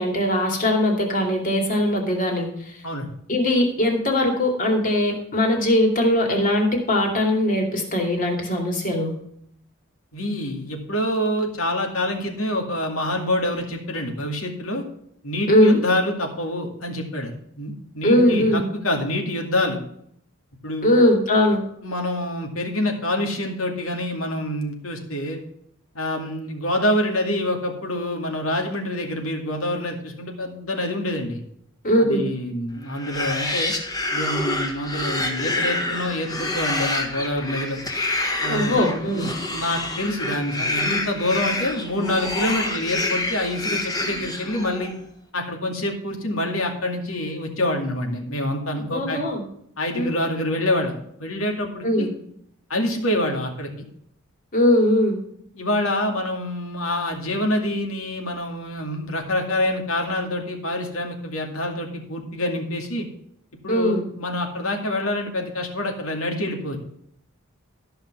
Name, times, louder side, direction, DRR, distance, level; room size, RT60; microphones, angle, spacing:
voice 1, 0.0-2.5 3.3-9.1 15.5-15.8 18.0-18.6 20.8-21.6 31.8-32.2 38.5-39.3 48.9-49.4 49.9-50.1 51.8-52.1 54.5-55.2 63.7-64.0, left 1 dB, 40° left, 2 dB, 2.6 m, -20 dB
voice 2, 10.1-14.9 15.2-19.8 20.6-20.9 21.8-25.4 25.9-31.4 32.0-33.7 34.1-37.8 38.4-44.9 45.3-49.2 49.8-52.1 52.7-53.7 55.5-63.1 63.6-66.8, left 1 dB, 80° left, 2 dB, 2.3 m, -26 dB
sound 1, 32.9-44.9, left 2 dB, 20° left, 1.5 m, -27 dB
13.5 x 5.7 x 5.6 m, 0.69 s
head